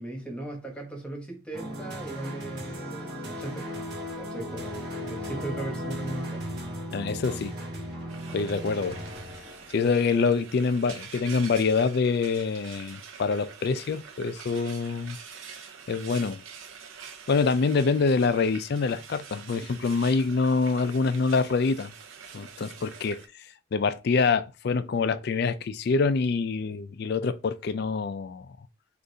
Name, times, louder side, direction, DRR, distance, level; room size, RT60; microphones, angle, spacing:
voice 1, 0.0-3.8 4.2-6.5, right 2 dB, 5° left, 1.0 m, -38 dB
sound 1, 1.5-9.8, equal, 50° right, 2.0 m, -36 dB
voice 2, 6.9-7.5 8.3-9.0 9.7-15.2 15.9-16.4 17.3-21.9 22.3-23.2 23.7-28.5, left 4 dB, 50° left, 0.3 m, -25 dB
Frying (food), 8.1-23.3, right 6 dB, 70° right, 0.7 m, -46 dB
6.5 x 2.5 x 2.7 m
head